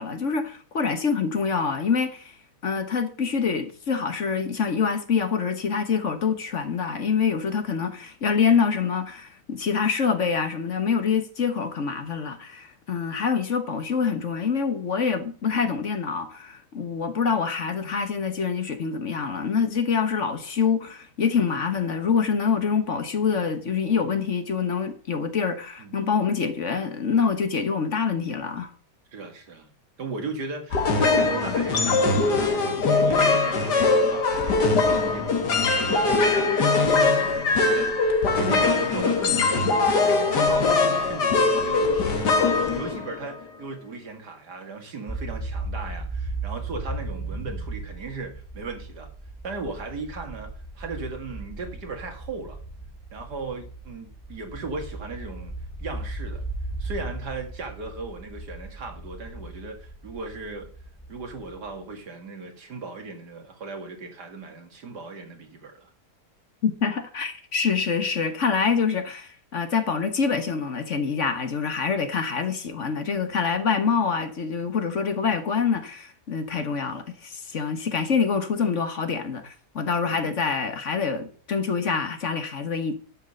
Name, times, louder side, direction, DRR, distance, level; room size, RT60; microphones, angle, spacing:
voice 1, 0.0-2.3 2.6-28.7 66.6-82.9, left 6 dB, 50° left, 1.5 m, -26 dB
voice 2, 25.8-26.1 29.1-29.7 30.0-37.9 38.2-49.1 49.4-52.6 53.1-55.5 55.8-56.4 56.8-60.7 61.1-65.9 80.0-80.4, right 3 dB, 85° right, 2.7 m, -37 dB
sound 1, 30.7-43.4, left 3 dB, 90° left, 2.3 m, -21 dB
sound 2, 45.1-61.9, right 2 dB, 5° left, 2.0 m, -36 dB
11.5 x 6.5 x 6.5 m
omnidirectional pair, 1.7 m